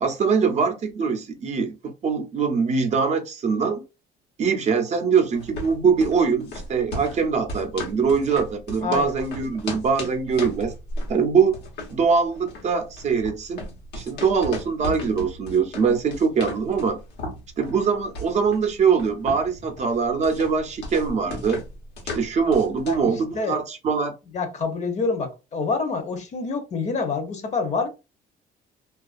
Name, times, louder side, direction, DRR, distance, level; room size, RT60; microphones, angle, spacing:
voice 1, 0.0-3.8 4.4-10.7 11.1-11.6 11.9-13.7 13.9-17.0 17.6-21.6 22.1-24.1, right 5 dB, 40° right, 0.5 m, -22 dB
sound 1, 5.3-23.1, left 1 dB, 85° left, 0.9 m, -36 dB
voice 2, 8.8-9.1 22.9-23.6 24.3-27.9, left 4 dB, 45° left, 0.7 m, -27 dB
2.3 x 2.3 x 2.4 m
cardioid pair, 110°, 17 cm